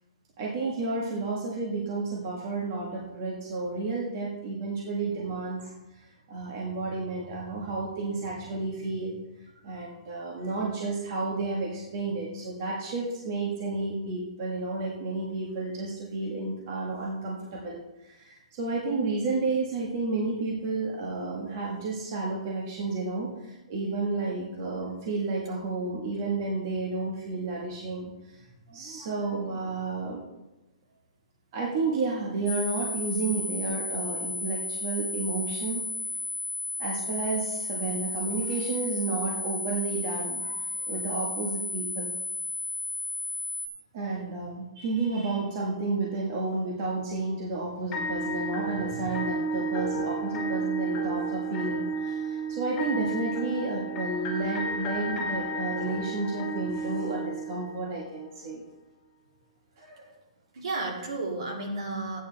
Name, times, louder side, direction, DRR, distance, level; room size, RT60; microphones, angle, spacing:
voice 1, 0.4-9.2 9.6-30.2 31.5-35.8 36.8-42.1 43.9-58.6, right 3 dB, 35° right, -3 dB, 1.6 m, -31 dB
sound 1, 32.5-43.7, left 2 dB, 5° right, 1.5 m, -33 dB
sound 2, 47.9-58.0, right 2 dB, 15° left, 1.5 m, -32 dB
voice 2, 59.8-60.1 60.5-62.2, right 2 dB, 65° right, -1 dB, 3.1 m, -33 dB
13.5 x 9.1 x 3.5 m, 0.96 s
hypercardioid pair, 175°, 3 cm